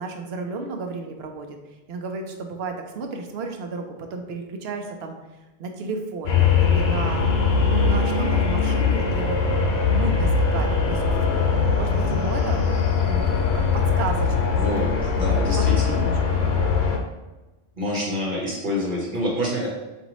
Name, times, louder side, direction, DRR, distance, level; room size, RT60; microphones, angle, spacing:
voice 1, 0.0-1.6 1.9-5.2 5.6-7.2 7.7-9.4 9.9-12.7 13.1-14.6 15.9-16.5, right 4 dB, 75° right, 4 dB, 0.8 m, -33 dB
sound 1, 6.3-17.0, left 5 dB, 70° left, 0.8 m, -21 dB
voice 2, 14.5-16.0 17.7-19.7, equal, 50° right, -4 dB, 1.1 m, -27 dB
5.0 x 2.6 x 2.9 m, 1.1 s
omnidirectional pair, 1.1 m